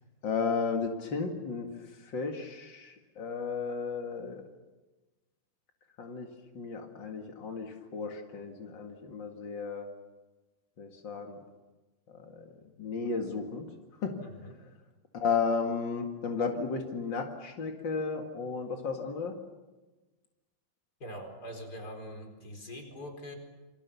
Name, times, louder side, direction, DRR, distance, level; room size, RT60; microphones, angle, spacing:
voice 1, 0.2-1.7 2.0-4.4 6.0-6.3 6.5-9.9 10.8-11.4 12.8-13.6 14.0-14.2 15.1-19.3, left 5 dB, 60° left, 3 dB, 1.2 m, -33 dB
voice 2, 14.2-14.5 21.0-23.3, equal, 20° left, 4 dB, 4.5 m, -43 dB
28.5 x 25.0 x 7.1 m, 1.2 s
omnidirectional pair, 5.5 m